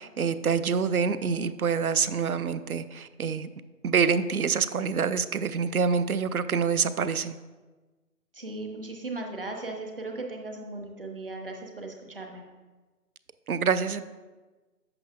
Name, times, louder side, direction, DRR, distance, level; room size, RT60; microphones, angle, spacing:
voice 1, 0.0-3.5 3.8-7.4 13.5-14.0, right 6 dB, 65° right, 13 dB, 0.5 m, -26 dB
voice 2, 8.3-12.4, right 2 dB, 35° right, 2 dB, 0.9 m, -37 dB
8.7 x 7.7 x 2.5 m, 1.3 s
figure-of-eight pair, 165°, 48 cm